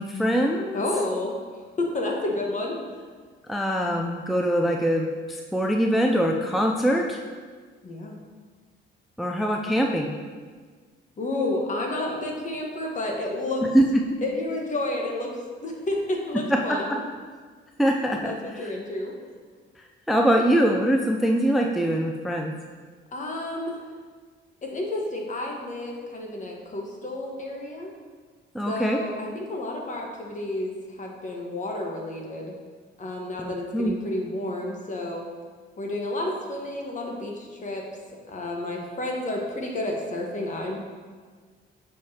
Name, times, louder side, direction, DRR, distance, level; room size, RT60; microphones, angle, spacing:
voice 1, 0.0-0.8 3.5-7.2 9.2-10.1 13.7-13.8 17.8-18.6 20.1-22.5 28.5-29.0 33.4-33.9, equal, ahead, 1 dB, 0.4 m, -23 dB
voice 2, 0.7-1.4 1.8-2.8 7.8-8.2 11.2-13.6 14.2-15.4 15.6-17.0 18.1-19.1 23.1-23.8 24.6-27.9 28.7-32.5 33.0-35.2 35.8-37.8 38.3-40.8, left 1 dB, 40° left, 0 dB, 1.2 m, -30 dB
6.9 x 4.8 x 2.8 m, 1.5 s
cardioid pair, 90°, 20 cm